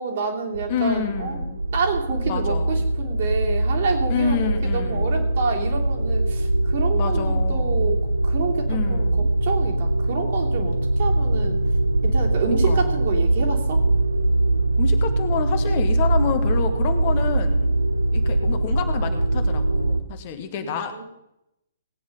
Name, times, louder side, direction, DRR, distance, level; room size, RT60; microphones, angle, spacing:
voice 1, 0.0-1.4 1.7-6.5 6.7-8.0 8.2-9.1 9.4-11.6 12.0-13.8 20.9-21.0, right 5 dB, 50° right, 1 dB, 2.9 m, -28 dB
sound 1, 0.5-20.0, right 1 dB, 85° right, 0.8 m, -22 dB
voice 2, 0.7-1.6 2.3-2.9 4.1-5.3 6.9-8.0 8.7-9.3 12.5-13.0 14.8-17.8 18.1-21.0, left 7 dB, 40° left, 6 dB, 1.5 m, -29 dB
18.0 x 8.7 x 5.4 m, 0.85 s
figure-of-eight pair, 120°, 0 cm